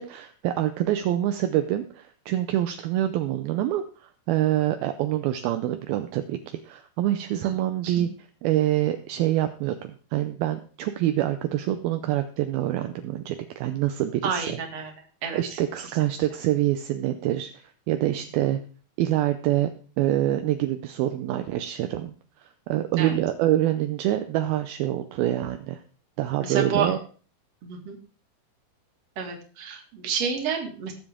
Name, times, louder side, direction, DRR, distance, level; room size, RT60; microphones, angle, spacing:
voice 1, 0.0-3.8 4.3-8.1 8.4-14.6 15.3-17.5 17.9-18.6 19.0-19.7 20.0-22.2 22.7-25.8 26.2-27.0, right 13 dB, 80° right, 8 dB, 2.4 m, -26 dB
voice 2, 14.2-14.9 15.2-15.6 22.9-23.1 26.4-27.0 27.6-28.0 29.2-30.9, right 6 dB, 45° right, 3 dB, 2.7 m, -29 dB
19.0 x 7.5 x 3.6 m, 0.40 s
omnidirectional pair, 4.6 m